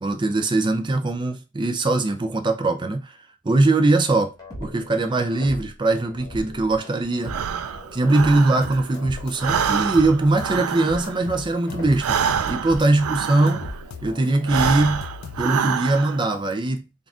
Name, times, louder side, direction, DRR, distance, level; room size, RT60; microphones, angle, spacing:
voice 1, 0.0-3.1 3.4-4.3 4.6-7.4 7.9-12.2 12.5-13.6 14.0-15.1 15.4-16.8, right 2 dB, 20° right, 0.4 m, -21 dB
sound 1, 4.3-14.9, equal, 20° left, 1.3 m, -40 dB
Breathing, 7.2-9.0 9.3-13.9 14.4-16.3, right 7 dB, 85° right, 0.4 m, -27 dB
sound 2, 8.6-10.8 11.0-12.5 12.8-15.7, left 6 dB, 80° left, 0.4 m, -39 dB
3.8 x 2.4 x 3.6 m
head